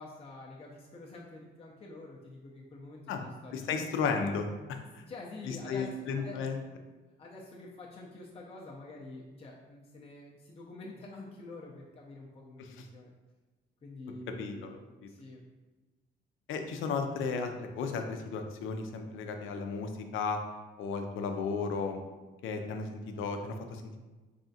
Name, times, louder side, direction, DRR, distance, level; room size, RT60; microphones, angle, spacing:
voice 1, 0.0-3.8 5.1-5.9 6.1-6.8 7.2-13.1 13.8-14.7 15.1-15.4, left 2 dB, 30° left, -3 dB, 0.6 m, -47 dB
voice 2, 3.5-4.5 4.9-5.0 5.4-6.6 12.6-12.9 14.4-14.8 16.5-20.4 20.8-22.0 22.4-24.0, left 5 dB, 80° left, 5 dB, 0.5 m, -34 dB
3.6 x 3.3 x 2.7 m, 1.2 s
cardioid pair, 90°, 20 cm